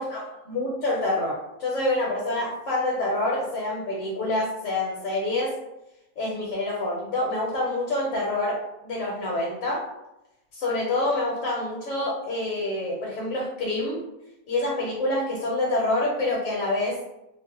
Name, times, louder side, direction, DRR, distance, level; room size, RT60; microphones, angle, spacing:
voice 1, 0.0-5.5 6.2-8.6 8.8-9.8 10.5-14.0 14.5-17.0, left 2 dB, 70° left, -4 dB, 1.0 m, -27 dB
2.5 x 2.1 x 2.7 m, 0.91 s
omnidirectional pair, 1.5 m